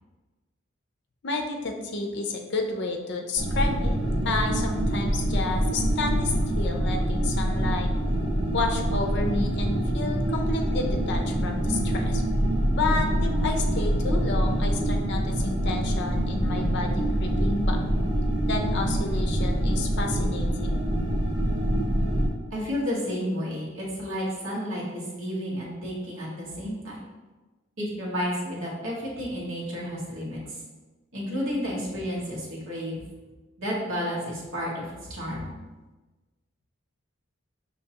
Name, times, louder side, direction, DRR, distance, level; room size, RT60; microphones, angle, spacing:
voice 1, 1.2-4.0 4.2-7.9 8.5-12.2 12.8-17.8 18.5-20.8, left 3 dB, 55° left, 3 dB, 0.5 m, -31 dB
sound 1, 3.4-22.3, right 1 dB, 25° right, 1.3 m, -25 dB
voice 2, 22.5-27.0 27.8-30.6 31.1-33.0 33.6-35.5, equal, 70° right, -5 dB, 1.2 m, -31 dB
5.5 x 2.8 x 2.8 m, 1.2 s
head